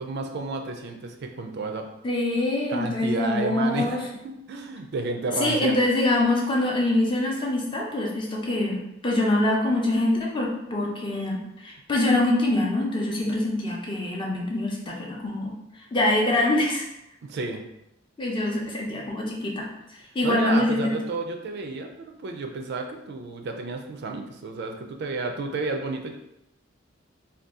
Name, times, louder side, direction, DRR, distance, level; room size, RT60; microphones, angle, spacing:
voice 1, 0.0-1.9 2.7-5.8 17.2-17.6 20.2-26.2, right 3 dB, 60° right, 4 dB, 0.4 m, -31 dB
voice 2, 2.0-4.0 5.4-15.6 15.9-16.9 18.2-19.7 20.1-20.9, left 1 dB, 25° left, -2 dB, 0.6 m, -24 dB
2.6 x 2.3 x 3.5 m, 0.85 s
head